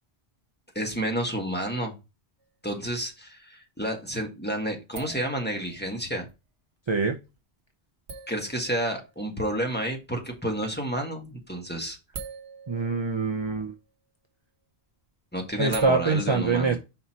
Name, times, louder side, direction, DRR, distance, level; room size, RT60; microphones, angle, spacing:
voice 1, 0.7-1.9 2.6-6.2 8.3-12.0 15.3-16.8, right 1 dB, 10° left, 1 dB, 1.6 m, -30 dB
sound 1, 2.4-2.5 5.0-6.3 7.1-7.2 8.1-10.0 11.3-11.4 11.7-13.9 15.6-15.8, right 5 dB, 85° right, 1.1 m, -41 dB
voice 2, 6.9-7.2 12.7-13.7 15.6-16.8, right 4 dB, 30° right, 4 dB, 0.7 m, -24 dB
5.4 x 4.4 x 4.4 m, 0.26 s
omnidirectional pair, 1.1 m